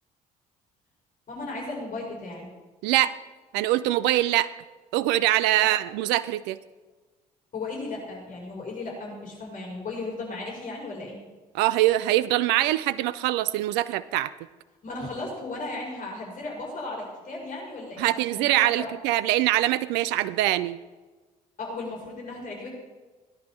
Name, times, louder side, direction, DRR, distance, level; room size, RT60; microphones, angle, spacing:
voice 1, 1.3-2.5 5.6-5.7 7.5-11.2 14.8-18.9 21.6-22.7, left 2 dB, 45° left, -2 dB, 5.6 m, -35 dB
voice 2, 2.8-3.2 3.5-4.5 4.9-6.6 11.5-14.3 18.0-20.8, right 15 dB, 65° right, 16 dB, 0.4 m, -23 dB
17.5 x 10.5 x 4.3 m, 1.3 s
hypercardioid pair, 50°, 19 cm